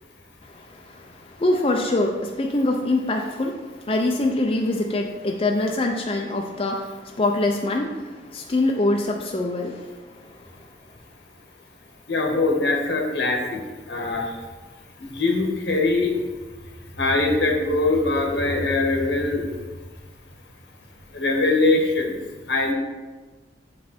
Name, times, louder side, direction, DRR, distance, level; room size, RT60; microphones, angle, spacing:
voice 1, 0.4-10.5 12.3-12.5, left 2 dB, 30° left, 1 dB, 0.5 m, -25 dB
voice 2, 12.1-13.6 13.9-14.4 15.0-16.2 17.0-19.5 21.1-22.2 22.5-22.7, left 2 dB, 75° left, 0 dB, 1.5 m, -22 dB
7.0 x 5.4 x 4.3 m, 1.3 s
head